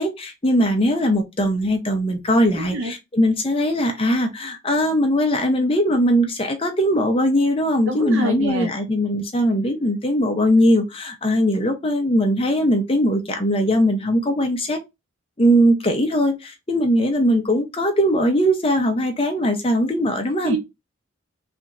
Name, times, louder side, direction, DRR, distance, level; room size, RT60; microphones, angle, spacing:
voice 1, 0.0-14.8 15.4-20.6, equal, 25° left, 0.7 m, -20 dB
voice 2, 2.5-2.9 7.9-8.7 9.1-9.2 20.4-20.6, right 2 dB, 75° right, 0.6 m, -26 dB
3.3 x 2.9 x 2.5 m
head